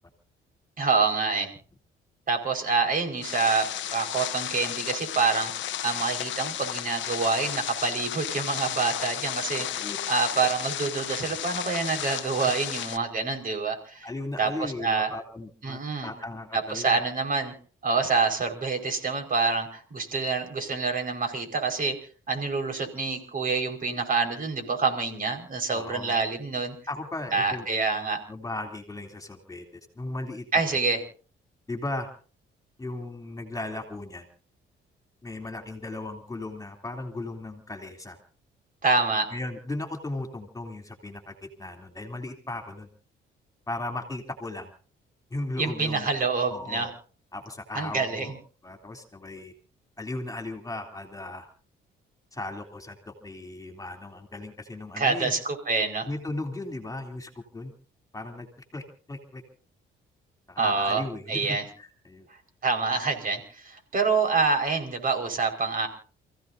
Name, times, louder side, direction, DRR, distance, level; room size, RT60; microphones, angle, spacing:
voice 1, 0.8-1.5 2.3-14.1 14.4-15.1 15.6-16.1 16.5-17.5 17.8-21.9 22.3-26.7 27.3-28.2 30.5-31.0 38.8-39.3 45.6-46.9 47.7-48.4 55.0-56.1 60.6-61.0 61.3-61.7 62.6-65.9, right 4 dB, 45° right, 4 dB, 5.1 m, -27 dB
sound 1, 3.2-13.0, left 12 dB, 70° left, 0.8 m, -33 dB
voice 2, 9.6-10.0 12.4-12.5 14.0-17.0 25.7-26.1 26.9-27.6 28.3-30.8 31.7-32.1 32.8-34.3 35.2-38.2 39.3-42.9 43.7-44.7 45.3-46.1 46.5-46.9 47.3-48.3 48.6-49.5 50.0-51.5 52.3-55.3 56.1-57.7 58.1-58.5 58.7-58.8 59.1-59.4 60.5-62.3, left 2 dB, 15° left, 4 dB, 3.2 m, -36 dB
29.5 x 16.0 x 2.7 m, 0.40 s
cardioid pair, 90°, 20 cm